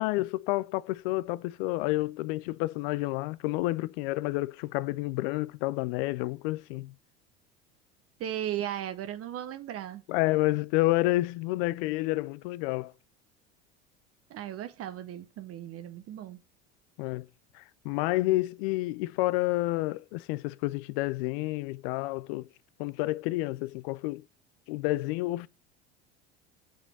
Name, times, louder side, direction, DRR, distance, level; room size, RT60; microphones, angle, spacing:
voice 1, 0.0-6.9 10.1-12.9 17.0-17.3 17.5-22.5 22.8-24.2 24.7-25.5, left 19 dB, 60° left, 0.5 m, -29 dB
voice 2, 8.2-10.0 14.3-16.4, right 11 dB, 45° right, 0.9 m, -36 dB
6.1 x 5.0 x 6.5 m
hypercardioid pair, 80°, 33 cm